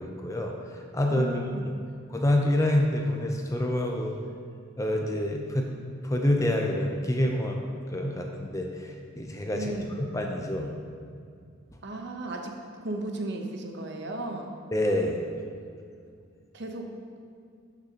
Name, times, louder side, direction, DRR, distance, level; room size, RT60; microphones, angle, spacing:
voice 1, 0.0-1.4 2.1-4.1 4.8-5.7 6.0-7.6 7.9-9.8 10.1-10.7 14.7-15.2, left 1 dB, 15° left, 2 dB, 0.5 m, -27 dB
voice 2, 1.1-1.6 9.5-10.0 11.8-14.5 16.5-17.0, right 2 dB, 55° right, 3 dB, 0.8 m, -35 dB
12.0 x 6.1 x 2.9 m, 2.3 s
head